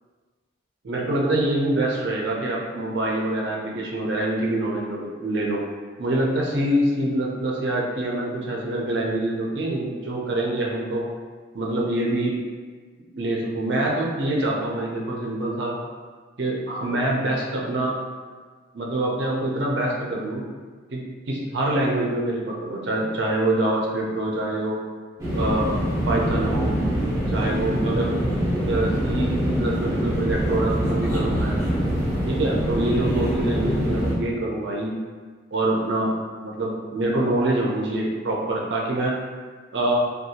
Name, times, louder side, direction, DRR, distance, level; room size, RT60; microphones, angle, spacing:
voice 1, 0.8-5.6 6.0-11.1 11.5-12.4 13.1-15.7 16.4-17.9 18.7-20.4 20.9-24.8 25.3-25.7 26.1-26.7 27.3-28.2 28.6-31.5 32.3-34.9 35.5-36.1 36.4-39.2 39.7-39.9, right 1 dB, 60° right, -2 dB, 0.5 m, -25 dB
sound 1, 25.2-34.1, equal, 20° right, 0.7 m, -24 dB
2.6 x 2.2 x 2.8 m, 1.5 s
head